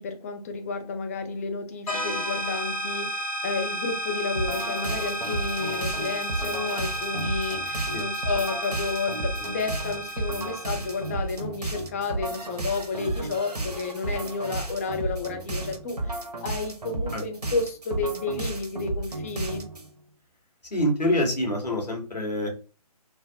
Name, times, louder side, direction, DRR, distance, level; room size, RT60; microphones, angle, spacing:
voice 1, 0.0-19.6, left 4 dB, 25° left, 4 dB, 0.4 m, -31 dB
sound 1, 1.9-11.3, right 1 dB, 60° left, 1.1 m, -32 dB
sound 2, 4.3-19.9, right 2 dB, 75° right, 0.9 m, -33 dB
voice 2, 20.7-22.5, left 1 dB, 90° left, 1 dB, 1.3 m, -26 dB
3.3 x 2.0 x 2.7 m, 0.35 s
figure-of-eight pair, 145°, 20 cm